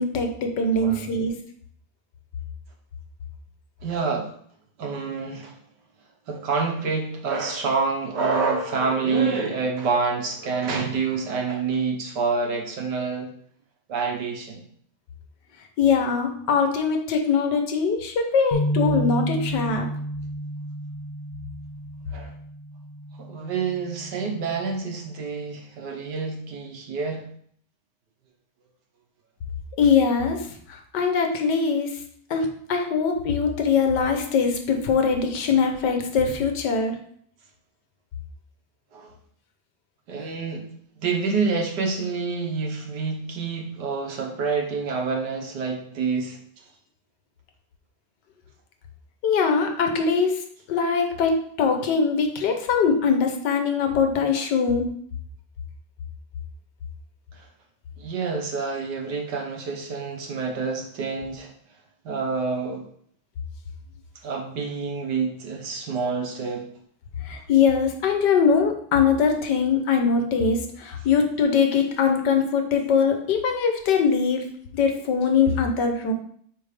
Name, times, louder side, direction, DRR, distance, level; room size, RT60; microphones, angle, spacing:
voice 1, 0.0-1.3 15.8-19.9 29.8-32.0 32.3-37.0 49.2-50.4 50.7-54.9 67.2-74.4 74.7-76.1, left 5 dB, 75° left, 5 dB, 1.6 m, -22 dB
voice 2, 3.8-4.3 4.8-5.5 6.3-13.3 13.9-14.6 22.1-22.3 23.2-27.3 38.9-39.1 40.1-40.7 41.0-46.4 57.3-57.5 58.0-61.5 62.1-62.9 64.2-66.7, right 4 dB, 75° right, 1 dB, 1.7 m, -27 dB
sound 1, 18.5-24.8, equal, 55° left, 0.5 m, -31 dB
5.7 x 4.4 x 4.9 m, 0.62 s
omnidirectional pair, 1.9 m